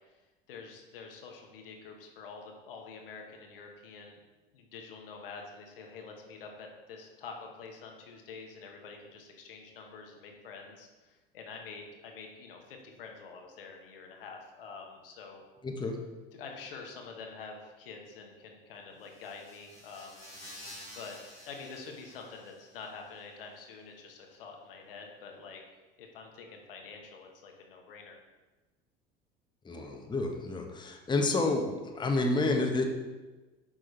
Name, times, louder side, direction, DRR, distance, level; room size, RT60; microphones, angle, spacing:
voice 1, 0.5-4.2 4.5-15.4 16.3-20.2 20.9-21.2 21.4-25.6 26.0-28.2, left 4 dB, 70° left, 2 dB, 1.3 m, -47 dB
voice 2, 15.6-16.0 29.6-32.8, left 2 dB, 15° left, 3 dB, 1.0 m, -29 dB
sound 1, 19.0-22.9, left 1 dB, 90° left, 2.6 m, -50 dB
8.5 x 6.2 x 3.2 m, 1.2 s
figure-of-eight pair, 70°, 30 cm